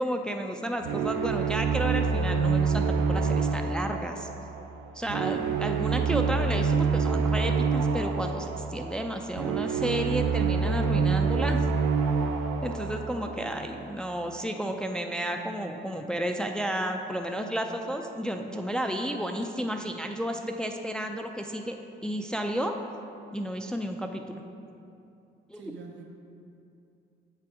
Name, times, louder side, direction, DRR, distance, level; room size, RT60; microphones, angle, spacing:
voice 1, 0.0-4.3 4.9-11.6 12.6-21.8 22.0-22.8 23.3-24.4 25.5-25.6, equal, 5° left, 4 dB, 0.3 m, -32 dB
sound 1, 0.8-13.9, right 5 dB, 90° right, 0.5 m, -27 dB
voice 2, 13.1-13.8 25.5-26.0, right 5 dB, 70° right, 1 dB, 0.9 m, -47 dB
7.5 x 3.5 x 4.7 m, 2.7 s
cardioid pair, 90°, 20 cm